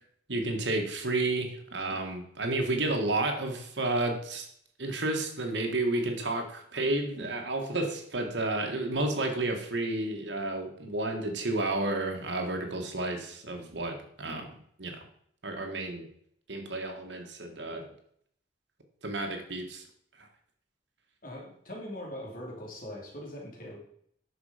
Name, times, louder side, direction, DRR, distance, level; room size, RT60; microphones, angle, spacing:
voice 1, 0.3-4.5 4.8-15.0 15.4-16.1 16.5-17.8 19.0-19.8, right 2 dB, 80° right, 4 dB, 1.9 m, -31 dB
voice 2, 21.2-23.8, left 1 dB, 50° left, -1 dB, 3.1 m, -41 dB
10.0 x 6.3 x 5.1 m, 0.67 s
head